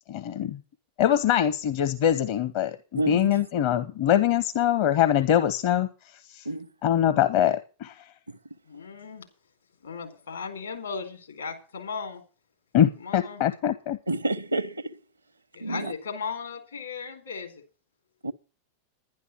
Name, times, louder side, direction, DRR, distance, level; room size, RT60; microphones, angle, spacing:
voice 1, 0.1-0.6 1.0-5.9 6.3-6.5 6.8-8.0 12.7-14.0, left 10 dB, 50° left, 0.9 m, -23 dB
voice 2, 8.7-9.3 9.8-12.2 13.0-13.4 15.5-17.6, left 5 dB, 75° left, 4.0 m, -36 dB
voice 3, 14.1-15.0 15.6-15.8 18.2-18.3, right 2 dB, 80° right, 0.8 m, -28 dB
11.0 x 10.5 x 6.0 m
figure-of-eight pair, 90°, 0 cm